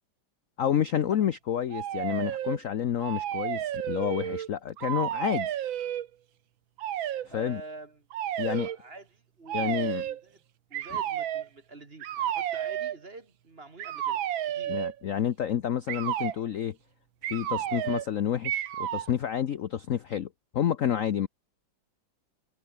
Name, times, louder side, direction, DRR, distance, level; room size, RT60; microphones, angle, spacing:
voice 1, 0.6-5.6 7.3-7.6 8.4-8.7 9.5-10.0 14.7-16.8 17.3-20.3 20.5-21.3, left 9 dB, 55° left, 0.9 m, -29 dB
sound 1, 1.7-2.6 3.0-4.5 4.8-6.1 6.8-7.3 8.1-8.8 9.5-10.2 10.7-11.5 12.0-13.0 13.8-15.0 15.9-16.4 17.2-18.1 18.4-19.1, right 11 dB, 80° right, 1.8 m, -31 dB
voice 2, 7.3-8.1 8.4-10.4 10.7-14.8 17.7-17.8, right 3 dB, 30° right, 2.2 m, -47 dB
omnidirectional pair, 2.1 m